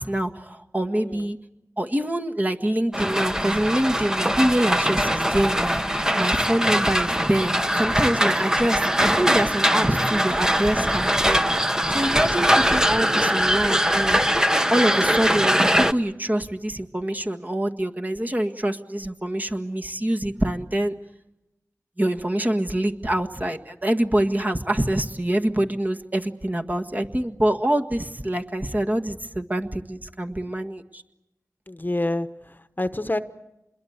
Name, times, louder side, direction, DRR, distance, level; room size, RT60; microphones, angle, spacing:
voice 1, 0.0-1.4 1.8-11.4 11.9-14.2 14.7-20.9 22.0-31.0, right 1 dB, 30° right, 4 dB, 1.7 m, -25 dB
voice 2, 0.9-1.2 12.1-12.5 31.7-33.2, left 1 dB, 30° left, 11 dB, 1.1 m, -29 dB
sound 1, 2.9-15.9, equal, 10° right, 1.0 m, -22 dB
27.0 x 21.5 x 8.1 m, 0.93 s
cardioid pair, 40°, 6 cm